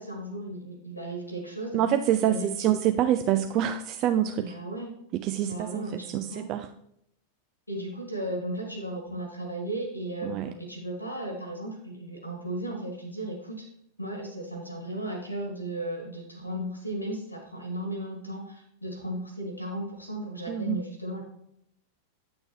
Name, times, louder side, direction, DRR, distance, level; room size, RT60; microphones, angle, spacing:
voice 1, 0.0-1.8 2.3-2.7 4.3-4.9 5.4-6.5 7.7-13.7 14.0-21.2, right 1 dB, 85° left, 2 dB, 1.9 m, -35 dB
voice 2, 1.7-4.4 5.2-5.9 6.1-6.7 10.2-10.5 20.5-20.8, right 11 dB, 40° right, 8 dB, 0.4 m, -26 dB
9.0 x 6.2 x 3.1 m, 0.76 s
figure-of-eight pair, 90°, 0 cm